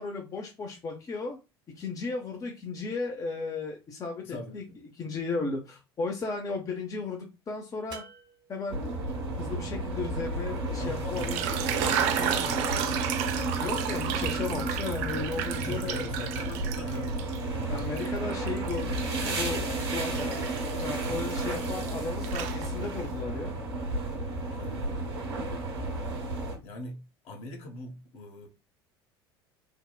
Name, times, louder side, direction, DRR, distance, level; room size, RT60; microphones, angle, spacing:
voice 1, 0.0-1.4 1.8-4.6 5.0-8.0 8.5-8.8 9.4-11.4 13.6-16.1 17.7-19.6 19.9-20.5 20.8-23.5, left 4 dB, 25° left, 0.6 m, -35 dB
voice 2, 4.2-4.6 10.8-13.4 15.3-17.2 24.5-25.1 26.6-28.5, left 2 dB, 50° left, 0.9 m, -42 dB
sound 1, 7.9-9.0 11.5-12.3 13.7-14.3 16.6-17.3, right 3 dB, 35° right, 0.8 m, -48 dB
sound 2, 8.7-26.6, right 2 dB, 70° right, 1.0 m, -32 dB
sound 3, 11.0-17.4 17.8-21.9 22.2-23.1, right 9 dB, 50° right, 0.4 m, -33 dB
3.5 x 2.1 x 2.3 m
figure-of-eight pair, 70°, 13 cm